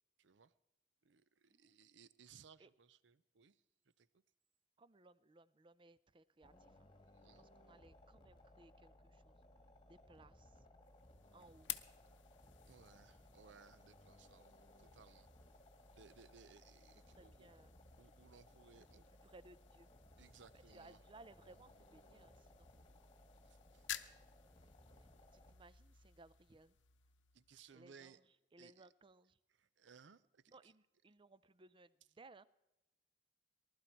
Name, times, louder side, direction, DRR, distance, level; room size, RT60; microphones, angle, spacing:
voice 1, 0.2-0.5 1.0-3.6 4.0-4.2 7.1-7.5 12.7-15.3 15.9-17.5 18.0-19.0 20.2-21.0 23.4-23.9 27.3-28.2 28.6-28.9 29.5-30.7, right 6 dB, 75° right, 17 dB, 0.6 m, -63 dB
voice 2, 4.8-6.9 7.4-9.4 9.9-10.6 11.3-11.7 17.1-17.7 18.8-18.9 19.2-19.9 20.5-22.7 24.6-24.7 25.0-26.8 27.7-28.2 28.5-29.4 30.5-32.5, right 2 dB, 30° right, 17 dB, 0.5 m, -63 dB
sound 1, 6.4-25.5, left 1 dB, 25° left, 1.6 m, -63 dB
sound 2, 10.8-27.8, left 12 dB, 85° left, 0.8 m, -55 dB
19.5 x 12.0 x 4.5 m, 0.99 s
head